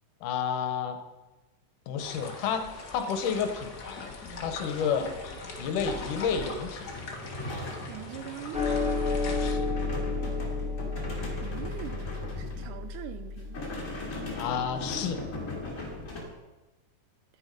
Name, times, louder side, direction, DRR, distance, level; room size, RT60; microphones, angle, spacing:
voice 1, 0.2-1.0 1.9-4.1 4.4-5.1 5.6-6.9 9.3-9.7 14.4-15.2, left 7 dB, 75° left, 7 dB, 2.3 m, -31 dB
sound 1, 2.0-9.5, left 3 dB, 55° left, 1.1 m, -40 dB
sound 2, 6.8-13.0 13.3-16.2, left 2 dB, 25° left, 2.1 m, -39 dB
voice 2, 7.9-8.7 11.4-13.6, right 13 dB, 80° right, 10 dB, 1.9 m, -42 dB
sound 3, 8.5-15.1, left 3 dB, 5° right, 0.9 m, -32 dB
10.5 x 9.5 x 5.2 m, 1.2 s
omnidirectional pair, 3.8 m